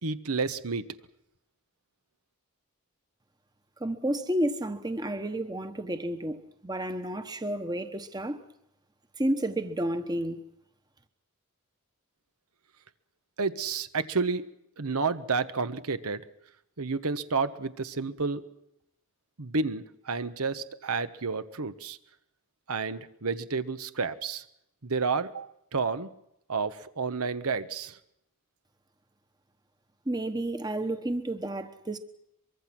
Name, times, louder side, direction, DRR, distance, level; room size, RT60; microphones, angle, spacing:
voice 1, 0.0-0.9 13.4-14.4 14.8-16.3 16.8-18.4 19.4-22.0 22.7-24.4 24.8-26.1 26.5-28.0, right 4 dB, 85° right, 1.2 m, -30 dB
voice 2, 3.8-8.4 9.2-10.4 30.0-32.0, right 1 dB, 20° right, 1.1 m, -31 dB
24.0 x 23.5 x 6.1 m
head